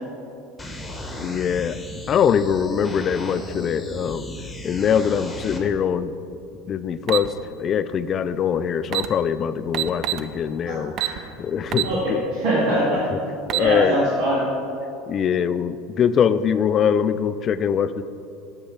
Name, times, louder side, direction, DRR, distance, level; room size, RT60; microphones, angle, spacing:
sound 1, 0.6-5.6, left 1 dB, 10° left, 1.2 m, -35 dB
voice 1, 1.2-1.8 2.1-4.3 4.6-6.4 6.7-7.3 7.6-11.0 11.4-12.2 13.1-13.2 13.5-14.1 15.1-18.0, left 8 dB, 40° left, 14 dB, 0.3 m, -22 dB
sound 2, 7.1-7.3 8.5-8.6 8.8-9.1 9.7-10.3 11.0-11.2 11.7-11.9 12.4-12.5 13.3-13.7, right 15 dB, 50° right, 0.4 m, -24 dB
voice 2, 10.7-11.1 11.8-13.0 13.6-14.4, right 1 dB, 75° right, -8 dB, 1.9 m, -23 dB
6.5 x 5.6 x 5.8 m, 2.6 s
supercardioid pair, 100°, 0 cm